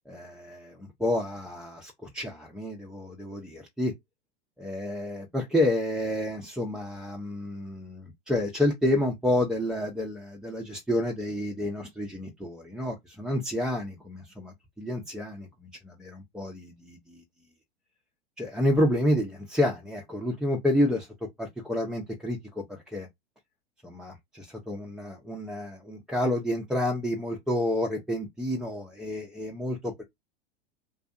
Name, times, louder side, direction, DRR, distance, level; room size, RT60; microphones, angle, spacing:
voice 1, 0.1-3.9 4.6-17.2 18.4-21.1 21.4-23.1 23.8-30.0, left 1 dB, ahead, 0.4 m, -29 dB
2.5 x 2.3 x 2.4 m
hypercardioid pair, 105°, 31 cm